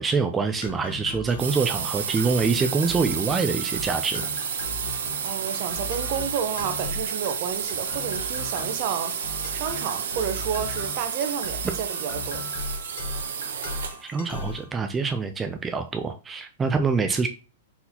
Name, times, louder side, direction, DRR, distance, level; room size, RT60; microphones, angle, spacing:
voice 1, 0.0-4.3 14.0-17.3, right 4 dB, 15° right, 0.3 m, -25 dB
Stacatto rhythm, 0.6-14.7, left 3 dB, 70° left, 1.1 m, -38 dB
sound 1, 1.4-14.1, right 7 dB, 75° right, 0.7 m, -31 dB
voice 2, 5.2-9.1 9.5-12.4, right 8 dB, 45° right, 0.7 m, -31 dB
4.2 x 3.9 x 2.8 m
hypercardioid pair, 145°, 0 cm